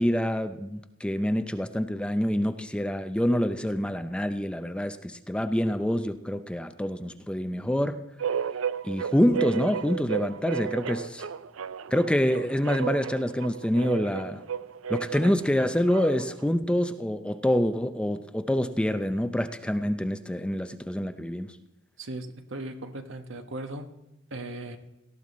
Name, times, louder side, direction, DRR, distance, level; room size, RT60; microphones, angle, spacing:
voice 1, 0.0-8.0 8.8-11.3 11.9-14.4 14.9-21.5, equal, 5° left, 9 dB, 0.5 m, -26 dB
sound 1, 8.2-16.4, right 8 dB, 85° right, 0.5 m, -33 dB
voice 2, 22.0-23.9 24.3-24.8, right 2 dB, 70° right, 7 dB, 1.2 m, -37 dB
18.0 x 13.5 x 4.2 m, 0.89 s
head